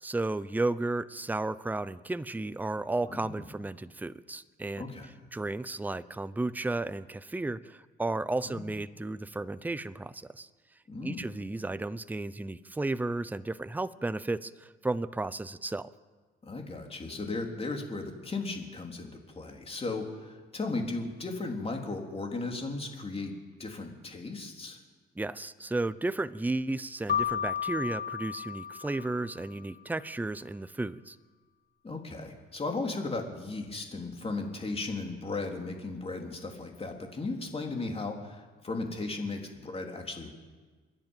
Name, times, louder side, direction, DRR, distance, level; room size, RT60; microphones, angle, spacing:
voice 1, 0.0-4.9 5.3-10.5 11.0-15.9 25.2-31.2, right 2 dB, 10° right, 14 dB, 0.7 m, -33 dB
voice 2, 3.1-3.4 4.8-5.2 8.4-8.7 10.9-11.3 16.4-23.3 23.6-24.8 31.8-40.3, left 3 dB, 30° left, 2 dB, 3.6 m, -36 dB
Keyboard (musical), 27.1-29.6, left 8 dB, 50° left, 1.8 m, -33 dB
27.0 x 10.5 x 9.1 m, 1.4 s
cardioid pair, 90°, 20 cm